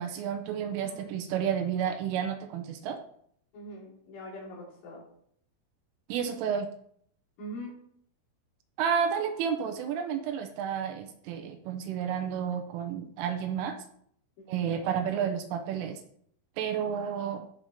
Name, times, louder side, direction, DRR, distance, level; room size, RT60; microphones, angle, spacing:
voice 1, 0.0-3.0 6.1-6.7 8.8-13.8 14.5-16.0 16.6-17.5, right 8 dB, 80° right, 6 dB, 3.2 m, -31 dB
voice 2, 0.8-1.1 3.5-5.0 7.4-7.7 14.5-14.9, equal, 60° left, -6 dB, 5.6 m, -43 dB
15.0 x 6.1 x 2.9 m, 0.67 s
omnidirectional pair, 5.9 m